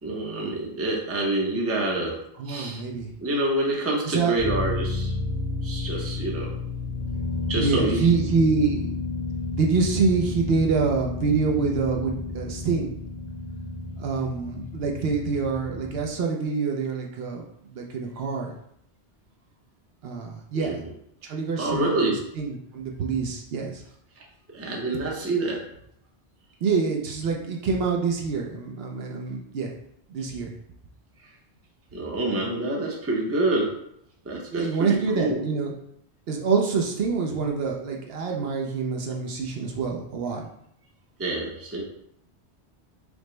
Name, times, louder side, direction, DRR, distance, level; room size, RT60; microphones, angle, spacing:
voice 1, 0.0-2.2 2.5-2.8 3.2-5.1 5.6-6.5 7.5-8.1 20.5-20.9 21.6-22.2 24.5-25.6 31.9-33.7 34.2-35.4 41.2-41.8, right 2 dB, 15° right, -2 dB, 0.5 m, -27 dB
voice 2, 2.4-3.1 4.1-4.3 7.5-8.9 9.5-12.9 14.0-18.6 20.0-20.8 21.2-23.8 26.6-29.7 30.1-30.5 34.5-35.7 36.3-40.5, right 5 dB, 65° right, 0 dB, 0.7 m, -26 dB
sound 1, 4.4-16.1, left 3 dB, 30° left, 0.8 m, -31 dB
5.0 x 2.0 x 3.1 m, 0.75 s
omnidirectional pair, 1.1 m